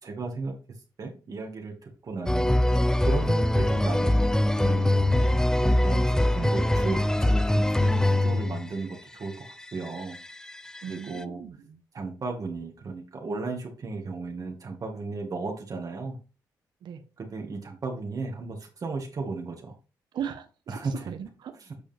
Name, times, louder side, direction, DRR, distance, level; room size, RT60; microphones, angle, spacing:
voice 1, 0.0-0.6 1.0-2.6 3.0-4.9 5.6-10.2 10.9-11.4 11.9-16.2 17.2-19.7 20.7-21.1 21.6-21.8, right 3 dB, 50° right, 2.0 m, -35 dB
sound 1, 2.3-8.8 9.6-10.9 11.2-11.3, left 1 dB, 10° left, 0.5 m, -23 dB
voice 2, 10.8-11.8 16.8-17.0 20.1-20.8 21.1-21.5, right 8 dB, 75° right, 1.2 m, -37 dB
8.4 x 5.0 x 3.4 m
cardioid pair, 70°, 8 cm